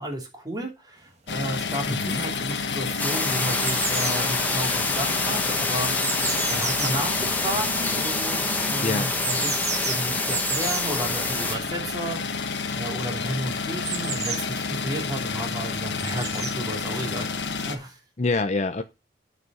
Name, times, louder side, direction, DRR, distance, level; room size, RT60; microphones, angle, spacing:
voice 1, 0.0-6.2 6.5-9.6 9.8-17.3 17.7-18.0, right 1 dB, 20° right, 1 dB, 2.9 m, -33 dB
sound 1, 1.3-17.8, left 4 dB, 75° left, 1.3 m, -30 dB
sound 2, 1.3-1.4 2.0-2.6 2.9-8.2 9.1-10.9 13.9-14.9 16.0-16.6 17.5-17.6, right 6 dB, 40° right, 1.5 m, -32 dB
voice 2, 1.9-2.2 8.8-9.1 18.2-18.8, left 3 dB, 40° left, 7 dB, 0.7 m, -25 dB
sound 3, 3.0-11.6, left 2 dB, 10° left, 1.1 m, -27 dB
9.4 x 5.2 x 5.5 m, 0.26 s
head